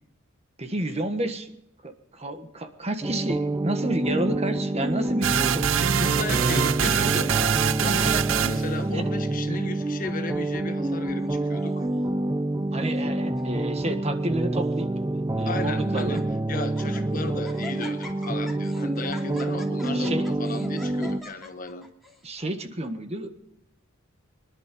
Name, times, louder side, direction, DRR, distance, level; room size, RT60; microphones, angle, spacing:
voice 1, 0.6-1.5 1.8-5.7 7.8-8.1 8.9-9.0 12.7-14.9 15.4-16.2 19.9-20.2 22.2-23.3, right 1 dB, 35° right, 1.4 m, -30 dB
sound 1, 3.0-21.2, right 1 dB, 15° right, 0.6 m, -27 dB
sound 2, 5.2-8.7, right 9 dB, 75° right, 0.5 m, -24 dB
voice 2, 5.9-7.4 7.8-11.9 15.5-21.9, left 2 dB, 45° left, 1.2 m, -35 dB
Laughter, 11.2-12.0 12.7-13.1 13.3-13.4 14.2-14.8 15.4-15.5 15.8-16.2 16.6-17.0 17.4-22.2, left 2 dB, ahead, 2.7 m, -45 dB
24.0 x 11.0 x 5.2 m
head